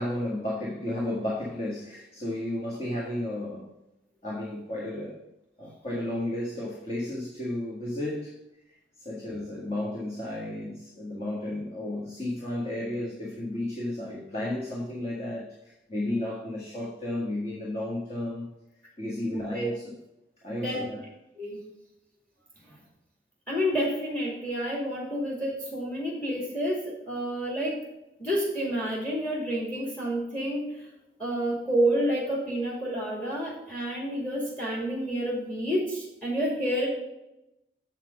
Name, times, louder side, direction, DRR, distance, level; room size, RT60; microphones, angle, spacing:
voice 1, 0.0-3.7 4.2-5.2 5.6-8.4 9.0-18.5 19.0-20.0 20.4-21.0, left 1 dB, 35° left, -5 dB, 1.6 m, -33 dB
voice 2, 19.3-19.7 20.5-20.8 21.4-21.6 23.5-27.8 28.2-30.9 31.2-36.9, equal, 5° left, -3 dB, 2.3 m, -29 dB
7.5 x 5.8 x 5.2 m, 0.91 s
head